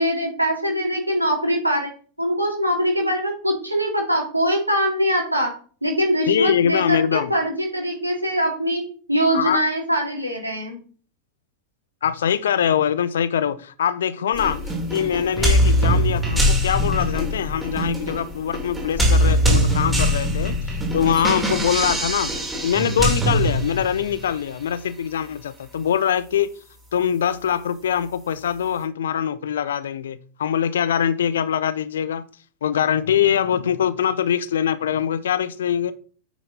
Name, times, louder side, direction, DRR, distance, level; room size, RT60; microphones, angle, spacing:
voice 1, 0.0-1.9 2.2-5.5 5.8-8.8 9.1-10.8, equal, 85° right, 2.8 m, -22 dB
voice 2, 6.3-7.3 9.3-9.6 12.0-14.6 14.9-22.3 22.6-26.5 26.9-32.2 32.6-35.9, left 9 dB, 65° left, 0.6 m, -23 dB
sound 1, 14.4-24.2, equal, 10° right, 2.8 m, -22 dB
9.0 x 5.2 x 4.2 m
figure-of-eight pair, 90°, 0 cm